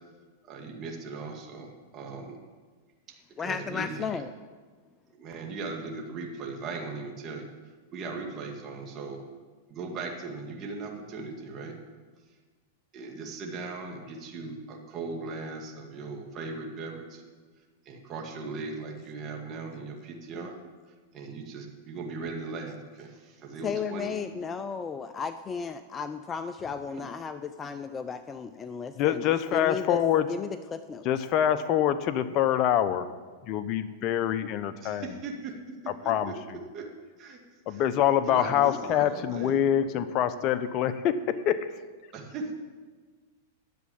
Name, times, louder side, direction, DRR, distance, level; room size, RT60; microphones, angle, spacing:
voice 1, 0.4-2.4 3.4-4.2 5.1-7.5 7.9-9.2 9.7-11.8 12.9-17.2 17.9-20.5 21.1-24.1 26.9-27.1 34.8-35.5 36.0-36.3 36.7-36.8 37.2-37.4 37.7-37.8 38.2-39.6 42.1-42.5, right 3 dB, 35° right, 1 dB, 2.1 m, -38 dB
voice 2, 3.4-4.3 23.6-29.2 29.5-30.0 30.3-31.0, left 6 dB, 20° left, 10 dB, 0.5 m, -34 dB
voice 3, 28.9-30.3 31.0-33.1 33.5-35.1 36.0-36.6 37.7-41.7, left 10 dB, 40° left, 11 dB, 0.9 m, -25 dB
10.5 x 7.6 x 8.6 m, 1.4 s
hypercardioid pair, 120°, 0 cm